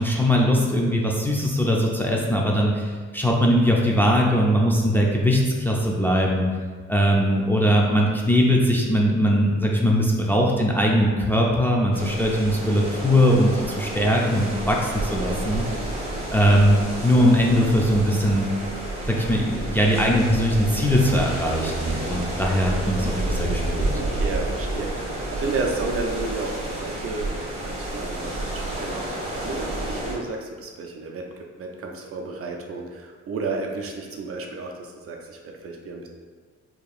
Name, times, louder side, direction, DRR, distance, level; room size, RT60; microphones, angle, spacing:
voice 1, 0.0-6.5 6.9-15.6 16.3-18.5 19.1-23.9, equal, 5° left, -2 dB, 0.5 m, -20 dB
sound 1, 11.9-30.1, right 1 dB, 20° right, 1.3 m, -30 dB
voice 2, 23.9-36.1, right 3 dB, 50° right, 1 dB, 0.6 m, -32 dB
4.6 x 2.8 x 2.4 m, 1.5 s
cardioid pair, 90°, 30 cm